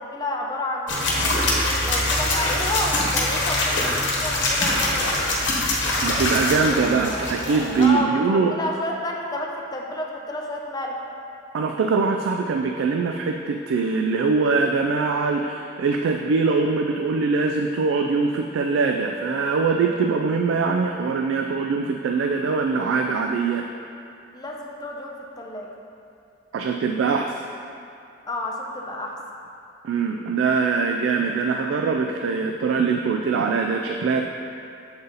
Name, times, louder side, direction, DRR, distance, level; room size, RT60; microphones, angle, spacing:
voice 1, 0.0-1.3 1.8-5.3 7.8-11.1 24.3-25.7 28.2-29.2, left 1 dB, 20° left, -1 dB, 0.6 m, -30 dB
sound 1, 0.9-7.9, left 2 dB, 70° left, 1.1 m, -23 dB
voice 2, 6.0-8.6 11.5-23.6 26.5-27.4 29.8-34.3, right 4 dB, 90° right, 3 dB, 0.3 m, -22 dB
7.1 x 4.0 x 3.8 m, 2.5 s
head